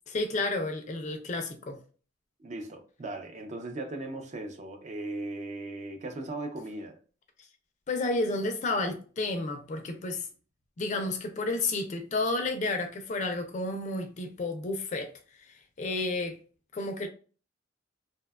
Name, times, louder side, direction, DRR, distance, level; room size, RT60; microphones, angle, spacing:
voice 1, 0.1-1.8 7.9-10.3 10.8-15.1 15.8-16.4 16.7-17.1, left 2 dB, 40° left, 0.4 m, -31 dB
voice 2, 2.4-7.0, right 2 dB, 40° right, 0.4 m, -38 dB
2.7 x 2.2 x 2.2 m
head